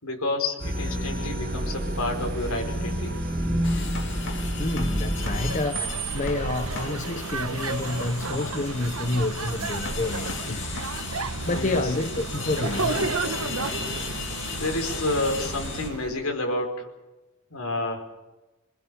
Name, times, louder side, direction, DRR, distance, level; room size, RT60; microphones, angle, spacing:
voice 1, 0.0-3.1 11.4-11.9 14.4-16.9 17.5-18.1, left 2 dB, 85° left, 4 dB, 5.1 m, -29 dB
sound 1, 0.6-5.6, equal, 40° right, 6.5 m, -28 dB
sound 2, 3.6-15.9, left 5 dB, 55° left, 2.7 m, -36 dB
voice 2, 4.6-5.8 6.1-10.6 11.5-13.1, left 2 dB, 35° left, 10 dB, 0.7 m, -29 dB
sound 3, 5.1-16.2, right 3 dB, 85° right, 1.4 m, -32 dB
27.0 x 20.0 x 7.1 m, 1.1 s
head